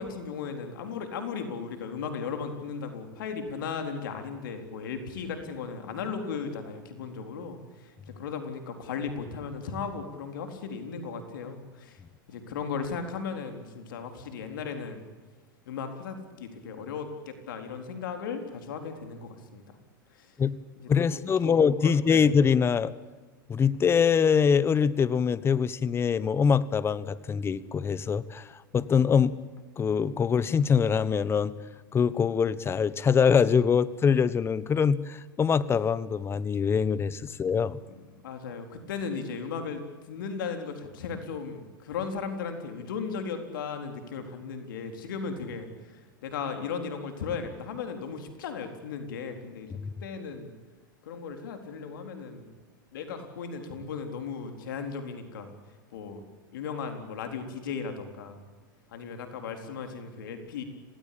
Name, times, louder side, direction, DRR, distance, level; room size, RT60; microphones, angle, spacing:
voice 1, 0.0-12.0 12.3-15.1 15.7-19.8 20.1-20.3 20.8-21.2 21.4-22.3 38.2-49.7 50.0-50.5 51.0-52.5 52.9-55.5 55.9-56.2 56.5-58.5 58.9-60.6, left 5 dB, 70° left, 6 dB, 4.1 m, -36 dB
voice 2, 20.9-22.9 23.5-28.5 28.7-29.3 29.8-31.5 31.9-37.8, left 6 dB, 20° left, 17 dB, 1.2 m, -24 dB
26.5 x 19.0 x 8.7 m, 1.3 s
hypercardioid pair, 105°, 11 cm